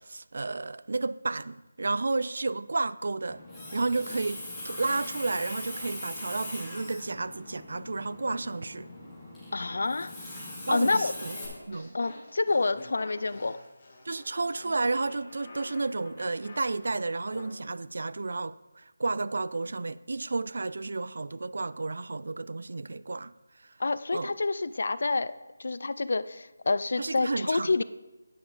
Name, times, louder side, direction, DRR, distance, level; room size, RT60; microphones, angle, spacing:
voice 1, 0.0-3.4 3.7-8.9 10.7-11.4 11.7-12.0 14.1-23.3 23.6-23.7 24.1-24.3 27.0-27.8, right 3 dB, 60° right, 0.3 m, -32 dB
Water tap faucet, 3.3-11.5, left 1 dB, 5° left, 1.7 m, -41 dB
voice 2, 9.5-10.1 10.7-11.1 11.9-13.6 23.8-25.3 25.6-27.8, left 3 dB, 60° left, 0.4 m, -28 dB
sound 1, 10.6-17.5, left 2 dB, 30° left, 1.6 m, -48 dB
9.2 x 5.7 x 5.4 m
figure-of-eight pair, 170°, 0 cm